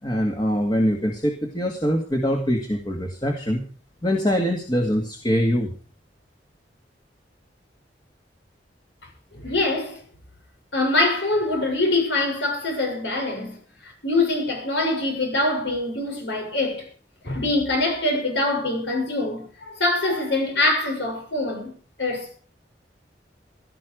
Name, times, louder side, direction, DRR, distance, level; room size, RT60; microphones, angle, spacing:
voice 1, 0.0-3.6 4.0-5.7, equal, 25° left, 2.0 m, -23 dB
voice 2, 9.3-10.0 10.7-16.9 17.2-22.4, left 2 dB, 75° left, 7.1 m, -24 dB
17.0 x 13.0 x 5.0 m
head